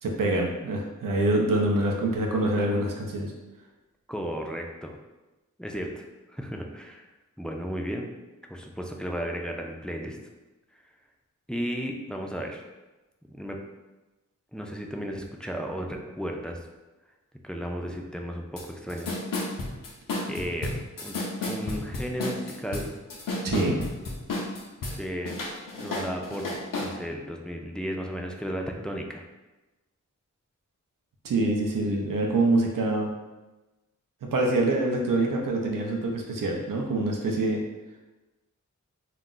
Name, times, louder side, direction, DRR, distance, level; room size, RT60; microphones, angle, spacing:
voice 1, 0.0-3.3 23.4-23.8 31.2-33.1 34.2-37.6, right 2 dB, 90° right, 1 dB, 0.5 m, -25 dB
voice 2, 4.1-5.0 5.6-7.1 7.4-8.1 8.5-10.2 11.5-12.6 13.3-13.6 14.5-16.6 17.4-19.2 20.3-21.2 21.5-22.9 25.0-25.4 25.8-29.2, equal, 5° left, 1 dB, 0.3 m, -34 dB
sound 1, 18.6-18.7 18.9-25.0 25.2-26.9, left 2 dB, 85° left, 0.6 m, -32 dB
2.3 x 2.0 x 3.7 m, 1.1 s
cardioid pair, 45°, 32 cm